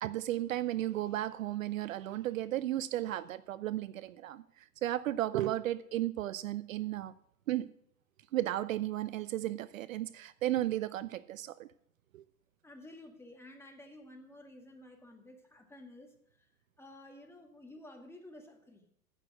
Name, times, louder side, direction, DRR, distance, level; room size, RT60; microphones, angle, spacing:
voice 1, 0.0-7.1 7.5-7.7 8.3-11.7 12.1-12.2, right 14 dB, 60° right, 15 dB, 0.6 m, -34 dB
voice 2, 12.6-16.5 16.8-18.9, left 1 dB, 5° left, 3 dB, 1.9 m, -52 dB
10.0 x 8.3 x 6.4 m, 0.69 s
hypercardioid pair, 110°, 44 cm